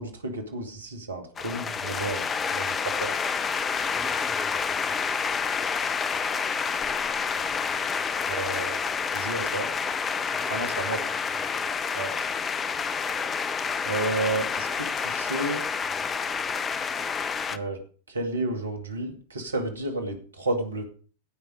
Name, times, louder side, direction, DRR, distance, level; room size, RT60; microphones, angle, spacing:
voice 1, 0.0-2.2 2.5-2.7 3.0-3.1 8.3-8.8 9.1-9.7 10.5-11.0 11.9-12.1 13.9-15.6 17.5-17.8 18.1-20.8, right 2 dB, 75° right, 2.0 m, -31 dB
sound 1, 1.4-17.6, left 6 dB, 20° left, 0.7 m, -29 dB
voice 2, 3.9-5.0 7.6-8.1 10.3-11.7 15.8-16.2, right 1 dB, ahead, 1.5 m, -48 dB
16.0 x 5.7 x 5.0 m
figure-of-eight pair, 90°, 0 cm